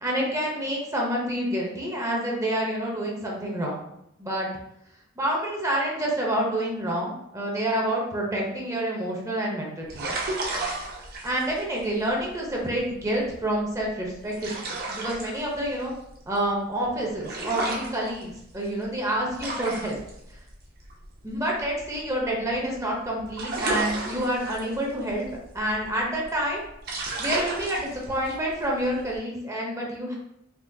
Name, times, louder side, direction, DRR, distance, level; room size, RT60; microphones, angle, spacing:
voice 1, 0.0-3.8 4.2-4.5 5.2-10.1 11.2-15.9 16.3-20.0 20.3-20.4 21.2-25.3 25.5-26.6 27.2-30.2, right 1 dB, 15° right, -2 dB, 0.7 m, -28 dB
sound 1, 9.8-22.8 23.0-29.2, right 2 dB, 50° right, 0.8 m, -34 dB
3.8 x 2.7 x 2.7 m, 0.80 s
head